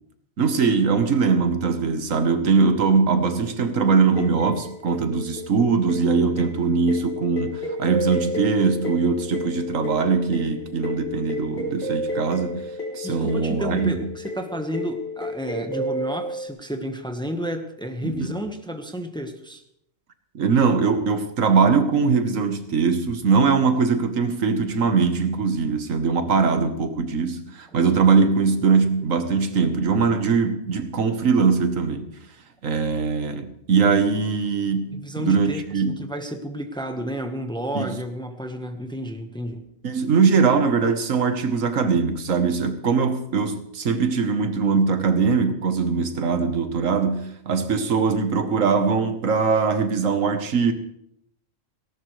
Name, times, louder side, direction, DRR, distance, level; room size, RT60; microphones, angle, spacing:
voice 1, 0.4-12.6 12.9-14.0 18.0-18.3 20.3-32.1 32.6-35.9 37.7-38.0 39.8-50.7, right 5 dB, 85° right, 1.6 m, -21 dB
sound 1, 4.2-16.5, left 1 dB, 50° left, 3.8 m, -31 dB
voice 2, 13.0-19.6 35.0-39.6, equal, 5° left, 1.2 m, -31 dB
18.5 x 17.5 x 3.2 m
omnidirectional pair, 1.3 m